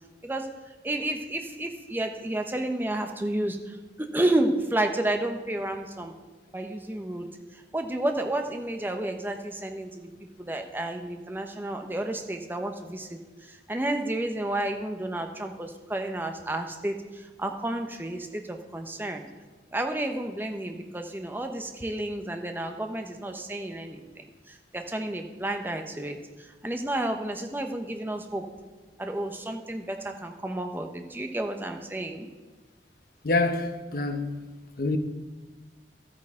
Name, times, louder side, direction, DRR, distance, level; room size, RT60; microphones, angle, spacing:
voice 1, 0.8-6.1 6.5-7.3 7.5-10.1 10.4-19.3 19.7-28.4 29.0-32.3, right 1 dB, 10° right, 0.7 m, -31 dB
voice 2, 33.2-34.5 34.8-35.0, left 3 dB, 55° left, 0.8 m, -26 dB
13.0 x 8.8 x 3.6 m
head